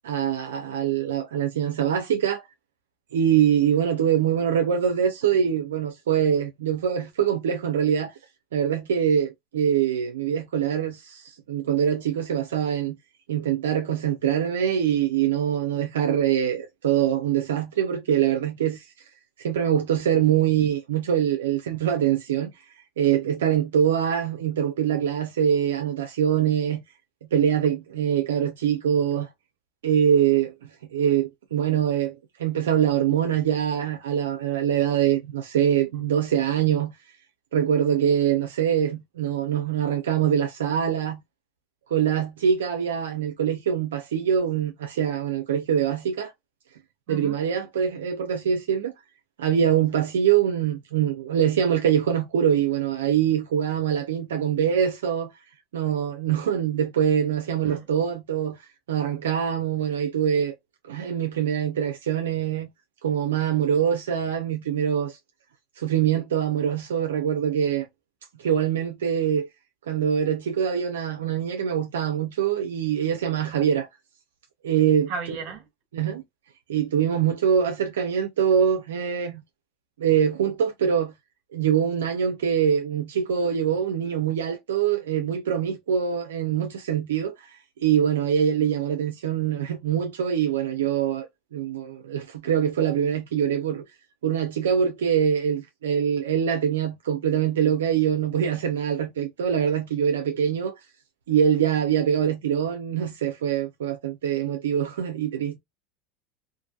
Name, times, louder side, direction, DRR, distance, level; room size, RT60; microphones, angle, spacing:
voice 1, 0.0-2.5 3.1-8.1 8.5-13.0 13.3-18.9 19.4-22.7 23.0-26.8 27.2-29.3 29.8-32.1 32.4-36.9 37.5-41.2 41.9-46.3 47.1-48.9 49.4-55.3 55.7-58.6 58.9-60.5 60.8-62.7 63.0-65.2 65.8-67.9 68.4-69.5 69.9-73.9 74.6-75.1 75.9-76.2 76.7-79.4 80.0-81.1 81.5-91.3 91.5-93.8 94.2-100.7 101.3-105.6, right 9 dB, 90° right, 0.4 m, -24 dB
voice 2, 47.1-47.4 57.6-57.8 75.1-75.7, right 5 dB, 55° right, 1.3 m, -35 dB
2.5 x 2.5 x 2.2 m
hypercardioid pair, 100°, 0 cm